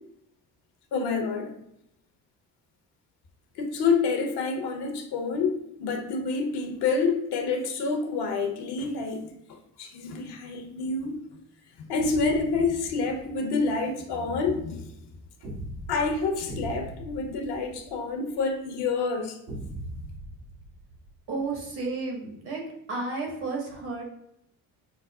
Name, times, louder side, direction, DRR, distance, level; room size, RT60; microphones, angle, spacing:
voice 1, 0.9-1.5 3.5-11.2 11.8-14.9 15.9-19.4, left 4 dB, 70° left, 0.7 m, -28 dB
sound 1, 12.0-13.4 15.4-18.4 19.5-21.6, right 1 dB, 80° right, 1.3 m, -40 dB
voice 2, 21.3-22.6 22.9-24.0, right 3 dB, 65° right, 1.5 m, -32 dB
5.7 x 2.0 x 2.3 m
supercardioid pair, 55°, 41 cm